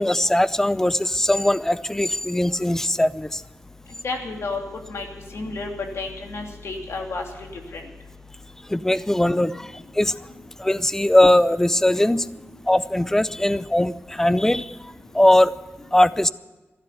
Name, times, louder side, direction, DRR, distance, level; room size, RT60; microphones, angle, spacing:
voice 1, 0.0-3.4 8.7-9.7 10.0-10.1 10.6-12.3 12.7-14.7 15.1-15.5 15.9-16.3, left 1 dB, 10° left, 16 dB, 0.5 m, -20 dB
voice 2, 4.0-4.6 4.9-5.1 5.3-5.7 6.0-7.2 7.7-7.8, left 3 dB, 75° left, 2 dB, 2.8 m, -30 dB
13.0 x 12.5 x 8.2 m, 1.2 s
wide cardioid pair, 100°, 5 cm